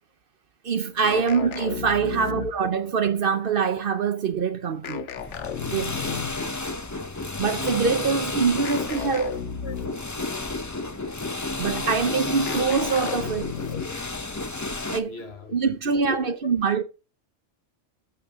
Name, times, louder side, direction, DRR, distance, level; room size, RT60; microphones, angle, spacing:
voice 1, 0.6-5.1 5.7-5.9 7.4-9.4 11.6-13.5 14.9-15.2 15.5-16.8, right 5 dB, 55° right, 0.8 m, -24 dB
sound 1, 1.0-2.8 4.8-6.5 8.6-10.2 12.5-14.1, left 8 dB, 75° left, 1.1 m, -34 dB
sound 2, 5.2-15.0, left 2 dB, 20° left, 0.6 m, -31 dB
voice 2, 6.0-6.6 8.9-9.3 9.6-9.8 13.1-13.2 13.7-14.0 15.1-15.5 15.8-16.4, left 4 dB, 60° left, 1.4 m, -41 dB
12.5 x 7.1 x 3.6 m
omnidirectional pair, 1.2 m